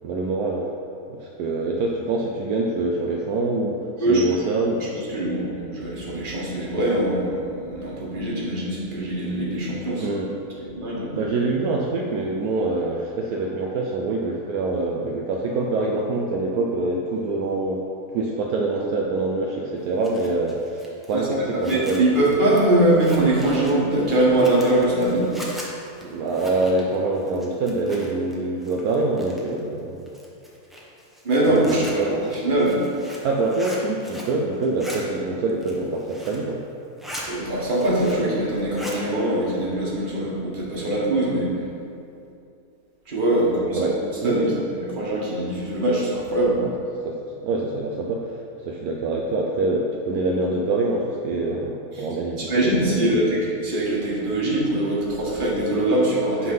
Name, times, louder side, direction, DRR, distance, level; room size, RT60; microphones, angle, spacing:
voice 1, 0.0-0.7 1.1-4.9 10.0-10.3 11.1-17.8 18.1-22.0 26.0-30.0 31.5-32.1 33.2-36.6 43.7-43.9 44.2-44.6 46.6-46.7 47.0-47.2 47.4-48.4 48.6-52.8 53.1-53.2, right 2 dB, 75° right, -1 dB, 1.1 m, -25 dB
voice 2, 5.1-10.1 10.6-11.1 21.1-21.3 21.6-25.3 31.2-32.0 32.4-32.8 37.3-41.5 43.1-43.9 44.2-46.6 51.9-52.0 52.4-56.5, right 1 dB, 35° right, -6 dB, 1.6 m, -22 dB
Zipper (clothing), 19.8-28.3 28.6-29.6 30.1-34.4 34.6-35.0 35.5-36.5 36.8-37.3 37.6-38.3 38.6-39.0, equal, ahead, 0.7 m, -40 dB
8.4 x 3.8 x 5.4 m, 2.7 s
omnidirectional pair, 1.7 m